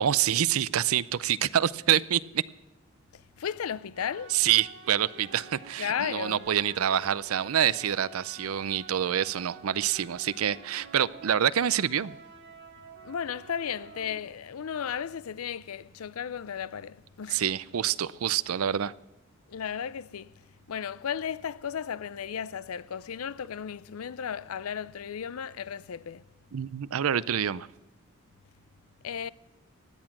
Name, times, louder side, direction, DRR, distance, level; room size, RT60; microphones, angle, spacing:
voice 1, 0.0-2.4 4.3-12.2 17.3-18.9 26.5-27.7, right 10 dB, 80° right, 0.5 m, -26 dB
voice 2, 3.1-4.4 5.8-6.5 13.0-17.4 19.5-20.3 20.7-26.2 29.0-29.3, left 8 dB, 85° left, 0.5 m, -34 dB
sound 1, 3.9-14.2, right 5 dB, 55° right, 1.5 m, -49 dB
16.0 x 10.5 x 6.0 m
head